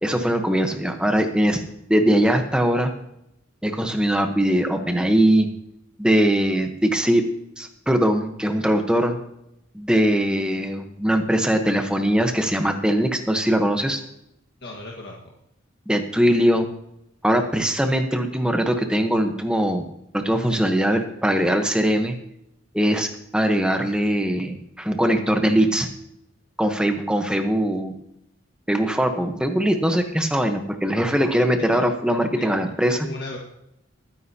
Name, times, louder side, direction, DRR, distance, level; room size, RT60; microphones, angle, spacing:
voice 1, 0.0-1.6 1.9-2.9 3.6-5.5 6.0-7.2 7.6-9.2 9.7-14.0 15.9-16.7 17.2-19.9 20.1-22.1 22.7-25.9 26.6-28.0 28.7-33.1, equal, 5° right, 5 dB, 1.0 m, -21 dB
voice 2, 14.6-15.2 31.6-31.9 32.3-32.4 32.9-33.4, left 2 dB, 55° left, -2 dB, 1.6 m, -36 dB
21.0 x 9.7 x 2.8 m, 0.81 s
head